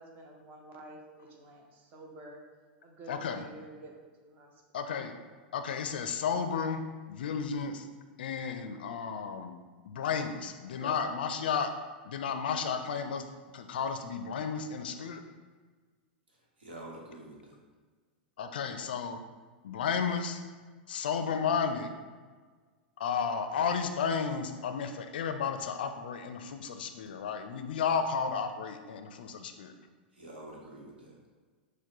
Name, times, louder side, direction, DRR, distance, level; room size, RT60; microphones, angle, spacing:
voice 1, 0.0-2.4 2.8-3.9 4.2-4.6 10.6-11.0, right 1 dB, 35° right, 1 dB, 0.8 m, -49 dB
voice 2, 3.1-3.4 4.7-5.1 5.5-6.8 7.1-7.9 8.2-9.5 9.8-11.7 12.0-13.2 13.5-15.2 18.4-19.2 19.6-20.4 20.9-21.9 23.0-29.7, left 6 dB, 70° left, 7 dB, 0.4 m, -33 dB
voice 3, 16.6-17.6 30.1-31.2, right 1 dB, 80° right, -2 dB, 1.0 m, -47 dB
6.4 x 2.2 x 2.9 m, 1.5 s
hypercardioid pair, 95°, 5 cm